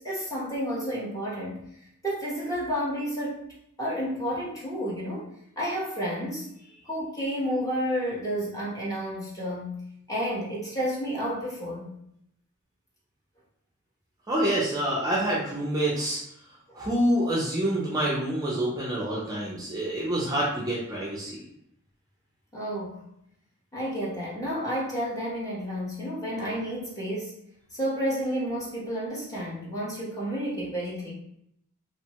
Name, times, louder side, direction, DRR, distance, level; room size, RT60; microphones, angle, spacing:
voice 1, 0.0-1.6 2.0-3.4 3.8-5.3 5.6-6.5 6.9-9.8 10.1-11.9 16.7-16.8 22.5-23.0 23.7-27.4 27.7-31.1, equal, 15° left, -5 dB, 0.8 m, -31 dB
voice 2, 14.3-16.2 16.8-21.4, right 1 dB, 15° right, -5 dB, 0.5 m, -27 dB
2.9 x 2.2 x 2.8 m, 0.74 s
head